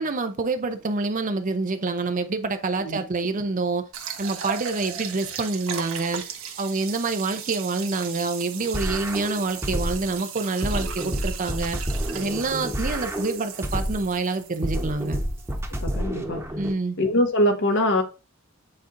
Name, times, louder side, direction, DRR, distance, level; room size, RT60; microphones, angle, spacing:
voice 1, 0.0-3.9 4.2-6.2 6.6-11.8 12.1-15.2 16.6-17.0, right 3 dB, 40° right, 0.6 m, -27 dB
sound 1, 3.9-15.8, right 8 dB, 70° right, 1.3 m, -37 dB
sound 2, 8.7-10.2 10.6-14.2 14.6-16.7, equal, 10° right, 1.1 m, -29 dB
voice 2, 15.8-16.4 17.0-18.0, left 1 dB, 60° left, 1.5 m, -22 dB
8.6 x 4.3 x 2.6 m
head